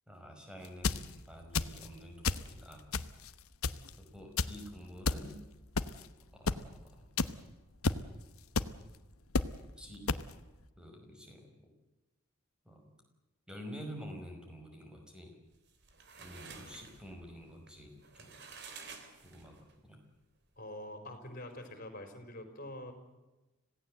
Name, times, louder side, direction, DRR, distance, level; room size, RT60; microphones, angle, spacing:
voice 1, 0.1-2.8 4.0-5.4 6.3-7.1 9.8-10.0 10.8-11.5 12.6-13.0 13.5-15.3 16.2-18.3 19.2-20.0, equal, 5° right, 3 dB, 5.1 m, -49 dB
sound 1, 0.6-1.0 1.5-1.9 2.2-2.5 2.9-3.3 3.6-3.9 4.4-4.5 5.0-5.2 5.7-6.0 6.5-6.6 7.2-7.3 7.8-8.0 8.5-8.7 9.3-9.5 10.1-10.2, left 4 dB, 85° left, 1.0 m, -30 dB
sound 2, 15.6-19.7, right 5 dB, 55° right, 3.4 m, -51 dB
voice 2, 20.6-22.9, left 1 dB, 40° left, 7 dB, 4.7 m, -45 dB
26.5 x 17.5 x 7.8 m, 1.1 s
head